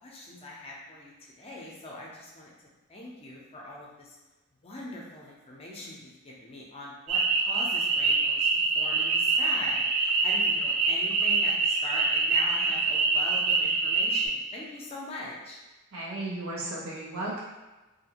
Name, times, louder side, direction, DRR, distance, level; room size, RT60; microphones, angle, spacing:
voice 1, 0.0-2.5 2.9-4.2 4.6-8.5 8.7-15.6, left 1 dB, 30° left, -3 dB, 0.6 m, -41 dB
sound 1, 7.1-14.3, right 4 dB, 70° right, 0.3 m, -25 dB
voice 2, 15.9-17.4, right 2 dB, 90° right, -5 dB, 0.8 m, -34 dB
2.7 x 2.5 x 2.8 m, 1.1 s
head